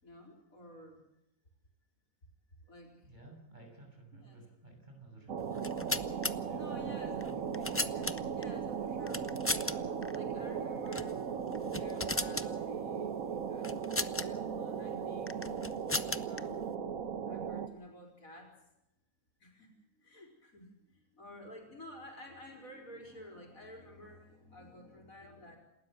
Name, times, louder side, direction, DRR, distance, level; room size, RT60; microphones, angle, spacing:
voice 1, 0.0-1.0 2.7-2.9 4.1-4.4 6.5-7.1 7.8-9.9 10.1-11.2 11.6-15.4 16.3-16.7 17.3-18.5 19.4-19.7 20.0-20.7 21.1-25.6, left 1 dB, 75° left, 2 dB, 5.0 m, -51 dB
voice 2, 2.8-5.7 6.4-7.8, right 1 dB, 30° right, 1 dB, 7.2 m, -54 dB
sound 1, 5.3-17.7, right 7 dB, 75° right, 1.5 m, -37 dB
sound 2, 5.5-6.3 7.2-8.4 9.1-9.7 10.0-10.2 10.9-11.1 11.5-12.5 13.6-14.3 15.3-16.4, left 2 dB, 15° left, 0.4 m, -35 dB
28.0 x 13.0 x 7.9 m, 0.87 s
omnidirectional pair, 1.5 m